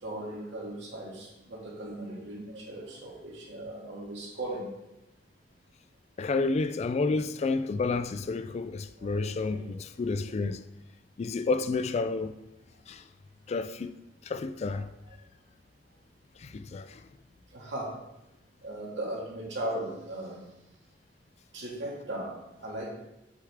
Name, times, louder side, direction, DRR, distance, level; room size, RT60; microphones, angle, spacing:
voice 1, 0.0-4.7 9.0-9.8 14.7-14.9 17.5-17.9 18.6-20.4 21.5-22.3 22.6-22.9, right 1 dB, 90° right, 2.0 m, -38 dB
voice 2, 6.2-10.6 11.2-12.4 12.9-13.0 13.5-13.9 14.2-14.9 16.4-17.0, left 3 dB, 35° left, 0.3 m, -30 dB
7.8 x 4.7 x 3.6 m
head